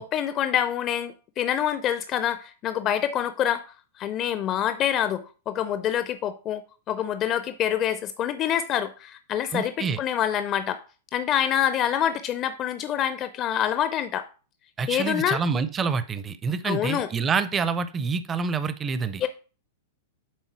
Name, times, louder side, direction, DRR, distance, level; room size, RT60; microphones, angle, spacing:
voice 1, 0.0-3.6 4.0-6.6 6.9-10.8 11.1-14.3 14.9-15.4 16.6-17.1 19.2-19.3, left 10 dB, 30° left, 0.4 m, -26 dB
voice 2, 9.5-10.0 14.8-19.3, right 5 dB, 20° right, 0.5 m, -27 dB
7.5 x 4.0 x 4.6 m
figure-of-eight pair, 100°, 0 cm